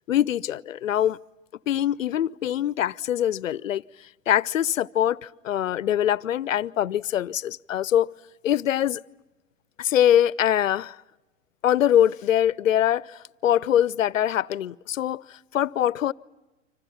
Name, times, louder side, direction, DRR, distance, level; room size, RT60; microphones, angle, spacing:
voice 1, 0.1-1.2 1.7-3.8 4.3-8.1 8.4-9.0 9.8-11.0 11.6-16.1, left 11 dB, 80° left, 0.7 m, -23 dB
29.5 x 26.0 x 5.7 m
hypercardioid pair, 95°, 39 cm